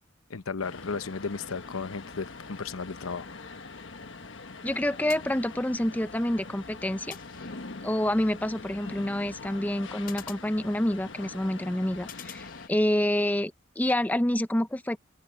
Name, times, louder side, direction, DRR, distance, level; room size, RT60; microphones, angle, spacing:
voice 1, 0.3-3.3, left 4 dB, 85° left, 0.9 m, -34 dB
sound 1, 0.6-12.7, left 3 dB, 60° left, 1.3 m, -43 dB
voice 2, 4.6-7.2 7.8-15.0, left 1 dB, 10° left, 0.5 m, -28 dB
sound 2, 5.1-6.0 7.1-8.0 10.1-11.2 12.1-13.1, left 9 dB, 45° left, 6.9 m, -48 dB
open air
head